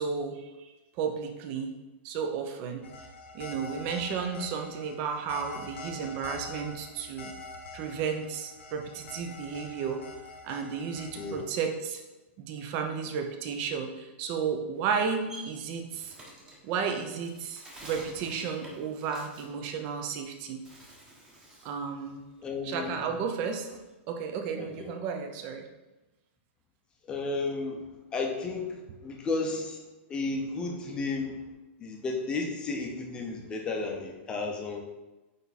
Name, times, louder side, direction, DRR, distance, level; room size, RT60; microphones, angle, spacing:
voice 1, 0.0-1.7 2.0-2.9 3.3-7.3 7.7-10.0 10.4-12.0 12.4-16.2 16.6-20.6 21.6-22.2 22.7-23.8 24.1-25.7, right 6 dB, 30° right, 4 dB, 0.7 m, -33 dB
sound 1, 2.8-11.4, left 2 dB, 75° left, 1.2 m, -45 dB
Bird, 14.7-20.2 20.5-21.8 22.2-23.9, right 1 dB, 10° right, 1.1 m, -49 dB
voice 2, 22.4-23.1 24.6-24.9 27.0-31.5 31.8-34.8, left 3 dB, 10° left, 1 dB, 0.7 m, -33 dB
9.0 x 3.4 x 4.1 m, 1.1 s
supercardioid pair, 175°, 7 cm